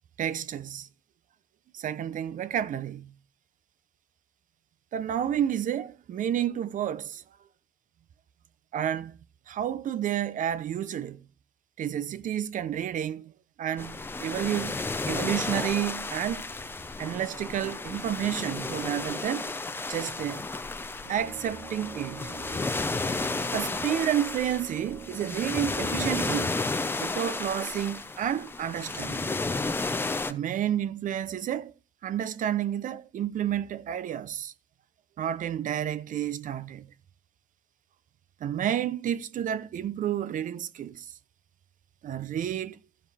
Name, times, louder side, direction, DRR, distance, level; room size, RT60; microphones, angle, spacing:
voice 1, 0.2-0.9 1.7-3.1 4.9-7.2 8.7-9.2 9.5-11.2 11.8-13.3 13.6-16.5 17.0-19.5 19.9-20.4 21.1-22.3 23.5-26.6 27.0-29.3 30.3-31.7 32.0-34.5 35.2-36.9 38.4-41.1 42.0-42.8, right 10 dB, 50° right, 0.8 m, -30 dB
sound 1, 13.8-30.3, left 3 dB, 15° left, 0.7 m, -32 dB
Brass instrument, 21.0-26.8, right 5 dB, 75° right, 4.1 m, -46 dB
14.5 x 5.3 x 4.2 m
cardioid pair, 110°, 17 cm